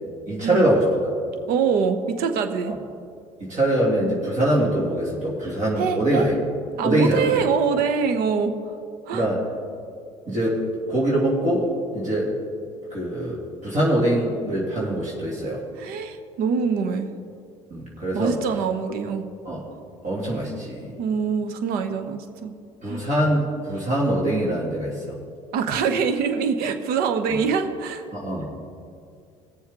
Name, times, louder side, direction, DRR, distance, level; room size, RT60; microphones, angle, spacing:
voice 1, 0.3-0.8 3.4-6.4 6.8-7.4 9.1-9.4 10.3-10.6 10.9-12.3 12.9-15.6 17.7-18.4 19.4-19.6 20.0-20.9 22.8-25.2 28.1-28.5, right 1 dB, 45° right, -5 dB, 2.7 m, -23 dB
voice 2, 1.5-2.7 5.8-6.3 6.8-8.5 9.1-9.3 15.8-17.1 18.1-19.3 21.0-22.5 22.9-23.0 25.5-28.0, right 6 dB, 60° right, 7 dB, 1.0 m, -24 dB
19.5 x 7.1 x 3.7 m, 2.3 s
hypercardioid pair, 65°, 17 cm